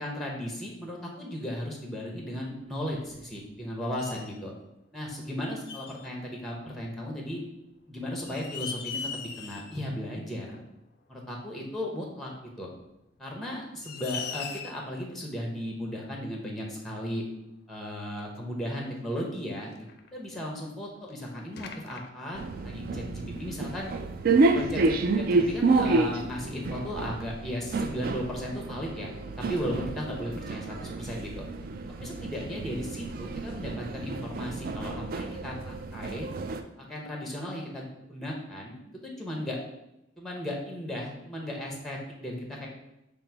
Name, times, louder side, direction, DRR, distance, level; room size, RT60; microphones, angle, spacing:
voice 1, 0.0-4.5 4.9-7.4 7.9-10.6 11.1-12.3 12.6-12.7 13.2-17.2 17.7-19.7 20.1-23.9 24.5-29.1 29.5-31.5 32.0-36.3 36.8-38.8 39.0-39.6 40.2-42.7, equal, ahead, -1 dB, 0.7 m, -36 dB
sound 1, 2.9-3.6 4.0-4.4 5.7-6.1 7.5-7.6 8.1-9.8 10.2-10.3 11.8-11.9 12.9-13.0 13.5-13.6 13.8-14.9 16.2-16.3 17.1-17.2 17.4-17.5 18.2-18.4 19.7-20.6 21.1-21.2 21.6-22.1, left 6 dB, 55° left, 0.4 m, -40 dB
sound 2, 22.3-36.6, right 3 dB, 50° right, 0.3 m, -29 dB
5.2 x 2.0 x 4.4 m, 0.89 s
head